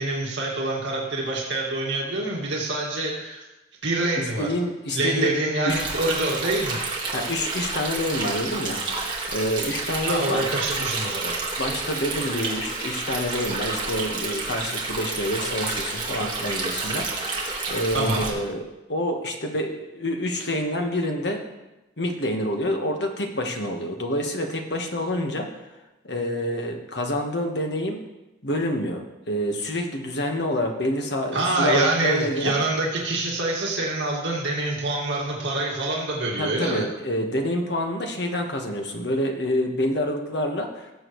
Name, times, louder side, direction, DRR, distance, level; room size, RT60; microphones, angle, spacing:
voice 1, 0.0-3.4 3.8-4.5 4.9-6.8 10.1-11.4 17.9-18.3 31.3-36.9, right 2 dB, 70° right, -3 dB, 2.1 m, -26 dB
voice 2, 4.2-5.3 5.7-5.8 7.1-9.0 9.3-10.4 11.6-17.4 17.7-18.6 18.9-21.4 22.0-25.5 26.0-28.0 28.4-32.6 36.4-40.9, left 1 dB, 60° left, 3 dB, 1.4 m, -27 dB
Stream, 5.7-18.3, right 3 dB, 25° right, 1.7 m, -30 dB
18.0 x 7.5 x 3.2 m, 1.0 s
head